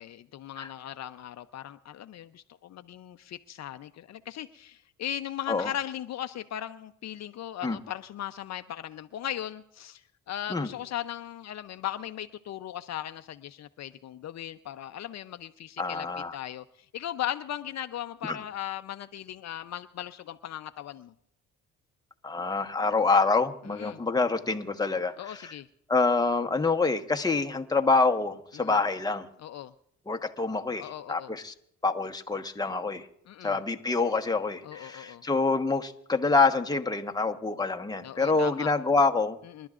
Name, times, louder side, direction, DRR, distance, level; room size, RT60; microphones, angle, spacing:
voice 1, 0.0-16.1 16.3-21.1 23.6-24.0 25.2-25.7 28.5-28.8 29.4-29.7 30.8-31.3 33.3-33.6 34.6-35.2 38.0-38.7 39.4-39.7, left 11 dB, 60° left, 10 dB, 0.6 m, -38 dB
voice 2, 15.8-16.4 18.2-18.4 22.2-25.5 25.9-29.3 30.1-31.5 31.8-33.1 33.4-39.4, left 3 dB, 15° left, 5 dB, 1.2 m, -26 dB
29.0 x 12.0 x 2.5 m, 0.72 s
cardioid pair, 90°, 30 cm